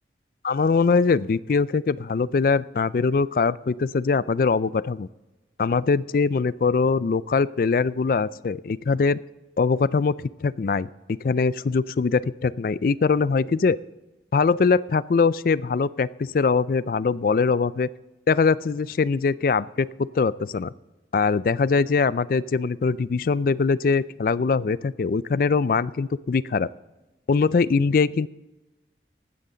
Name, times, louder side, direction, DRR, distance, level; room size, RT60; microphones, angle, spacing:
voice 1, 0.4-5.1 5.6-9.2 9.6-10.9 11.2-13.8 14.3-17.9 18.3-20.7 21.1-26.7 27.3-28.3, left 4 dB, 50° left, 19 dB, 0.3 m, -22 dB
15.5 x 12.5 x 3.9 m, 1.1 s
head